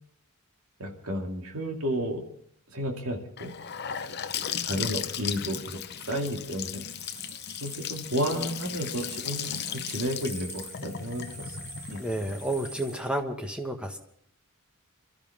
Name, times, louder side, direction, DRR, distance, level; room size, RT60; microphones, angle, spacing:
voice 1, 0.8-2.2 2.7-3.5 4.1-4.2 4.6-6.8 7.6-11.6 11.9-12.0, equal, 75° right, 2 dB, 2.5 m, -32 dB
Gurgling / Sink (filling or washing) / Bathtub (filling or washing), 3.4-13.2, left 9 dB, 50° left, 0.8 m, -36 dB
sound 1, 6.8-13.0, right 2 dB, 35° right, 6.0 m, -46 dB
voice 2, 12.0-14.0, right 1 dB, 5° right, 3 dB, 1.5 m, -31 dB
27.0 x 13.0 x 3.7 m, 0.67 s
head